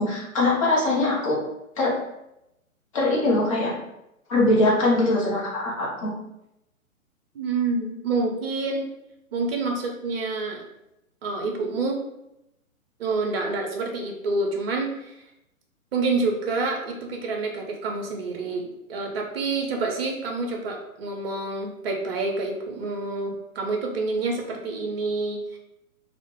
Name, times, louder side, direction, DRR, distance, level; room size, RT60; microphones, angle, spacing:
voice 1, 0.0-1.4 1.8-2.0 2.9-3.7 4.3-6.2, left 2 dB, 25° left, -4 dB, 0.5 m, -22 dB
voice 2, 7.3-8.9 9.3-10.6 11.2-12.0 13.0-15.1 15.9-25.6, right 3 dB, 45° right, 1 dB, 0.6 m, -28 dB
2.1 x 2.0 x 3.0 m, 0.86 s
figure-of-eight pair, 130°, 42 cm